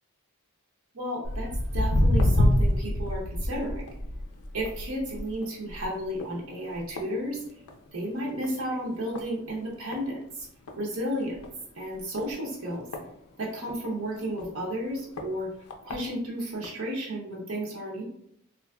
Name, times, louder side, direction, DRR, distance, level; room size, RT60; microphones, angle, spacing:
voice 1, 0.9-3.8 4.5-7.4 7.9-10.5 10.8-11.3 11.8-12.8 13.4-15.5 15.8-18.0, equal, 75° right, -4 dB, 0.8 m, -33 dB
Walk footsteps, 1.2-7.9 8.2-8.6 9.1-9.2 9.9-10.0 10.4-10.5 10.7-10.8 11.3-11.5 12.2-13.8 14.4-14.5 15.2-15.3 15.7-16.0 16.6-16.7, left 1 dB, 85° left, 0.5 m, -27 dB
3.2 x 2.5 x 2.2 m, 0.70 s
head